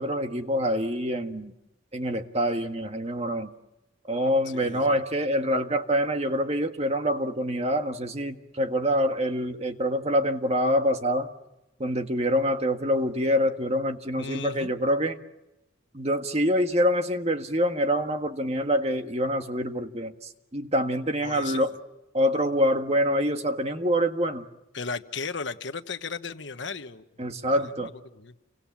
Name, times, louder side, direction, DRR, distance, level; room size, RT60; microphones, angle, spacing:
voice 1, 0.0-1.5 1.9-3.5 4.1-11.3 11.8-15.2 15.9-20.1 20.5-21.7 22.1-24.4 27.2-27.9, equal, 35° right, 1.7 m, -25 dB
voice 2, 4.5-5.0 14.2-14.7 21.2-21.7 24.7-28.3, left 4 dB, 65° left, 1.3 m, -36 dB
29.5 x 25.0 x 7.5 m
head